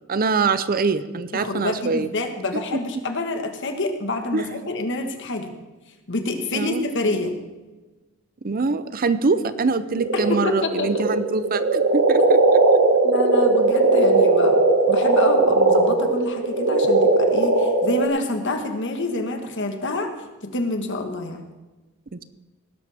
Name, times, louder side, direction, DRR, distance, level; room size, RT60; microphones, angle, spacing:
voice 1, 0.1-2.1 2.5-2.8 4.3-4.5 6.5-6.9 8.4-12.6 22.1-22.2, right 4 dB, 45° right, 13 dB, 0.6 m, -24 dB
voice 2, 1.3-5.5 6.1-7.4 10.3-10.9 12.3-12.4 13.0-14.6 14.9-20.1 20.4-21.5, left 2 dB, 60° left, 6 dB, 1.5 m, -27 dB
sound 1, 10.0-18.1, right 2 dB, 80° right, 1.4 m, -18 dB
19.0 x 11.0 x 3.5 m, 1.2 s
head